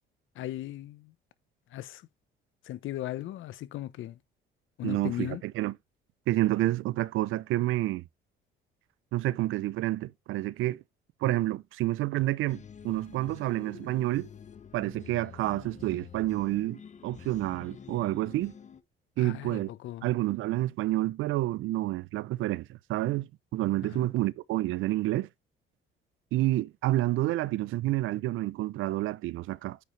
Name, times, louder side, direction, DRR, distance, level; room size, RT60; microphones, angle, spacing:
voice 1, 0.4-1.1 1.7-2.0 2.6-4.2 4.8-5.4 19.2-20.1 23.9-24.1, left 14 dB, 75° left, 1.0 m, -37 dB
voice 2, 4.8-5.8 6.3-8.0 9.1-10.8 11.2-14.3 14.7-18.5 19.2-19.7 20.0-25.3 26.3-29.8, right 16 dB, 80° right, 0.6 m, -29 dB
sound 1, 12.5-18.8, left 7 dB, 35° left, 1.0 m, -48 dB
9.3 x 5.5 x 3.3 m
cardioid pair, 100°, 20 cm